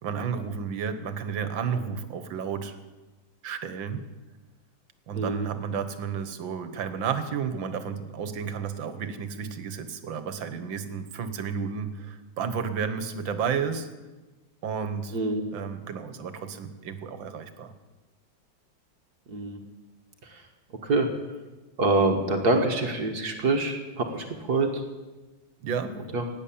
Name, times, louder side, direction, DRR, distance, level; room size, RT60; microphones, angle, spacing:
voice 1, 0.0-2.8 3.4-4.0 5.1-13.9 14.6-15.2 15.5-17.7 25.6-26.0, right 6 dB, 75° right, 10 dB, 1.9 m, -32 dB
voice 2, 5.1-5.5 15.1-15.4 19.3-19.6 20.8-21.1 21.8-24.7 26.1-26.2, right 2 dB, 55° right, 3 dB, 1.9 m, -25 dB
17.0 x 9.7 x 8.6 m, 1.2 s
omnidirectional pair, 2.1 m